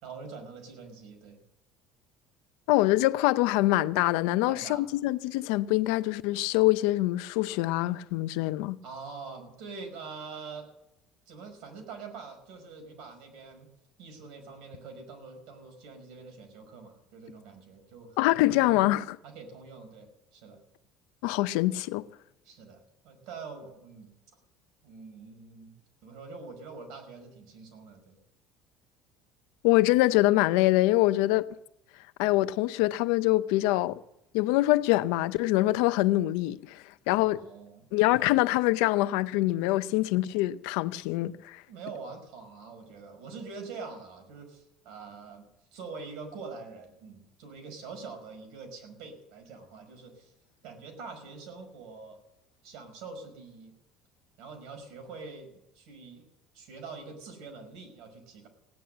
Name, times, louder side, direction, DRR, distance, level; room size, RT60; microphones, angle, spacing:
voice 1, 0.0-1.4 4.4-4.8 8.8-10.7 11.3-13.7 14.0-18.8 19.2-20.6 22.4-24.1 24.8-25.7 26.0-28.2 37.1-37.9 41.7-50.3 50.6-52.2 52.6-53.7 54.4-56.3 56.5-58.5, right 4 dB, 65° right, 5.5 m, -45 dB
voice 2, 2.7-8.8 18.2-19.2 21.2-22.1 29.6-31.4 32.2-34.0 34.3-37.4 37.9-41.6, left 17 dB, 90° left, 0.6 m, -24 dB
16.5 x 10.5 x 7.9 m
cardioid pair, 160°, 0 cm